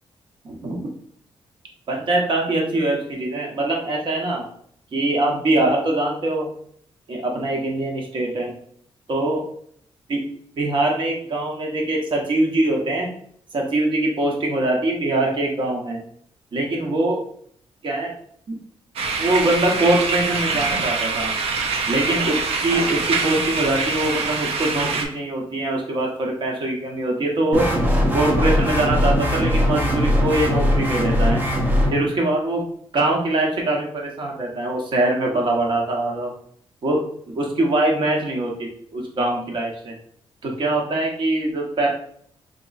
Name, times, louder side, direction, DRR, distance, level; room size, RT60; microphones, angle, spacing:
voice 1, 0.4-0.8 1.9-4.4 4.9-6.5 7.1-8.5 9.1-9.4 10.1-10.2 10.6-13.1 13.5-16.0 16.5-17.2 17.8-18.1 19.2-21.3 21.9-27.7 28.1-31.4 31.9-32.6 32.9-36.3 36.8-37.0 37.3-39.9 40.4-41.9, right 2 dB, 55° right, 0 dB, 1.0 m, -23 dB
sound 1, 19.0-25.0, right 4 dB, 80° right, 0.6 m, -24 dB
sound 2, 27.5-31.9, equal, 20° right, 0.7 m, -20 dB
5.1 x 3.0 x 2.5 m, 0.63 s
cardioid pair, 120°, 10 cm